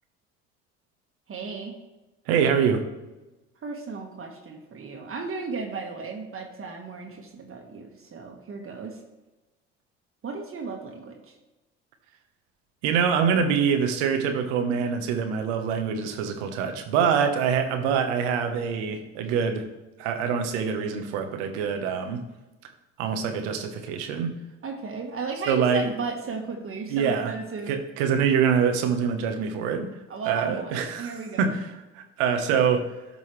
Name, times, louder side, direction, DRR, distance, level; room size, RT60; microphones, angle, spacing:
voice 1, 1.3-1.8 3.6-9.0 10.2-11.3 24.6-27.7 30.1-31.5, right 4 dB, 40° right, 1 dB, 1.6 m, -35 dB
voice 2, 2.3-2.8 12.8-19.7 20.0-22.2 23.0-24.3 25.5-25.9 26.9-27.3 27.7-29.9 30.3-31.6 31.9-32.9, right 7 dB, 80° right, 6 dB, 1.2 m, -25 dB
12.5 x 5.5 x 3.3 m, 1.1 s
hypercardioid pair, 65°, 33 cm